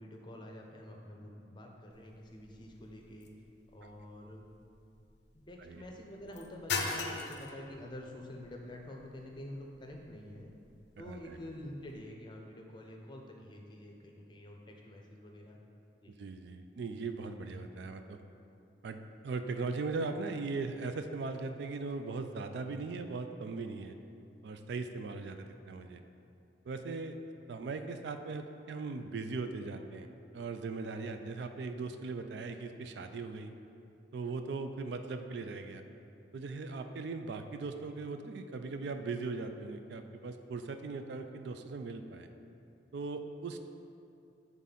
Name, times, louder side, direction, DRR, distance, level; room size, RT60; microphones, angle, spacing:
voice 1, 0.0-3.3 3.7-4.4 5.5-10.5 11.0-15.6 16.0-16.1, left 1 dB, 25° left, 1 dB, 0.6 m, -48 dB
sound 1, 1.9-12.0, left 4 dB, 70° left, 0.5 m, -43 dB
voice 2, 11.0-11.4 16.2-18.2 18.8-19.0 19.2-23.9 24.4-26.0 26.7-27.2 27.5-30.1 30.3-33.5 34.1-35.8 36.3-42.3 42.9-43.7, right 3 dB, 70° right, 7 dB, 0.3 m, -39 dB
7.0 x 3.6 x 4.1 m, 2.6 s
head